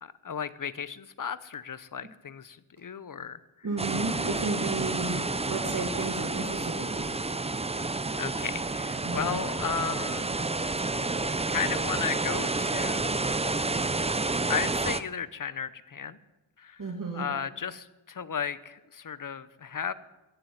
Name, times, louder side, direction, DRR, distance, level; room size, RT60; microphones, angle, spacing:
voice 1, 0.0-3.4 5.1-5.4 8.2-10.3 11.5-13.3 14.5-16.2 16.6-16.9 17.1-19.9, left 7 dB, 40° left, 16 dB, 0.9 m, -34 dB
voice 2, 3.6-7.1 9.0-9.4 16.8-17.3, right 3 dB, 40° right, 0 dB, 2.4 m, -33 dB
sound 1, 3.8-15.0, right 3 dB, 15° right, 0.5 m, -30 dB
15.0 x 7.6 x 9.5 m, 1.0 s
wide cardioid pair, 80°, 49 cm